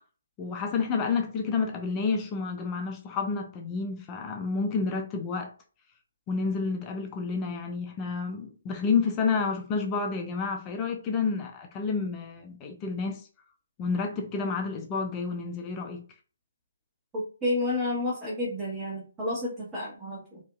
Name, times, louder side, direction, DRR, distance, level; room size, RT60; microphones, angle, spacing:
voice 1, 0.4-5.5 6.3-13.2 13.8-16.0, left 5 dB, 20° left, 0.5 m, -30 dB
voice 2, 17.1-20.4, left 1 dB, 15° right, 1.0 m, -30 dB
2.8 x 2.5 x 2.3 m
figure-of-eight pair, 140°, 0 cm